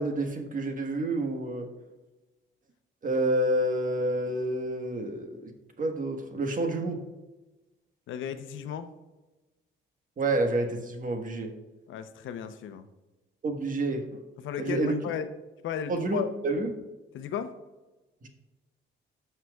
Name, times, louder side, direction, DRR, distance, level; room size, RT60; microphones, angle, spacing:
voice 1, 0.0-1.7 3.0-5.5 5.8-7.0 10.2-11.6 13.4-14.2 14.6-15.0 15.9-16.7 18.2-18.3, right 1 dB, 45° right, 4 dB, 1.4 m, -29 dB
voice 2, 8.1-8.9 11.9-12.8 14.4-15.3 15.6-16.3 17.1-17.5, left 8 dB, 80° left, 9 dB, 0.7 m, -35 dB
14.0 x 5.7 x 2.3 m, 1.1 s
cardioid pair, 90°, 20 cm